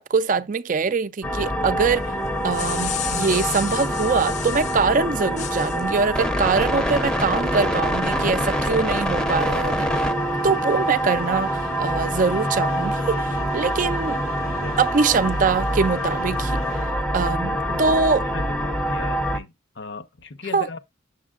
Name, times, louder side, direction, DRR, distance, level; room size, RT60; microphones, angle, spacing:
voice 1, 0.0-2.1 2.4-9.9 10.4-14.2 14.8-16.6 17.1-18.2 20.5-20.7, right 4 dB, 40° right, 0.4 m, -23 dB
sound 1, 1.2-19.4, equal, 5° left, 0.6 m, -25 dB
sound 2, 2.3-4.8 5.4-6.0, left 11 dB, 35° left, 0.3 m, -32 dB
sound 3, 6.9-17.3, left 1 dB, 80° left, 1.1 m, -40 dB
voice 2, 8.0-8.4 14.4-14.8 17.4-20.8, left 3 dB, 60° left, 0.8 m, -38 dB
7.4 x 7.1 x 2.4 m
head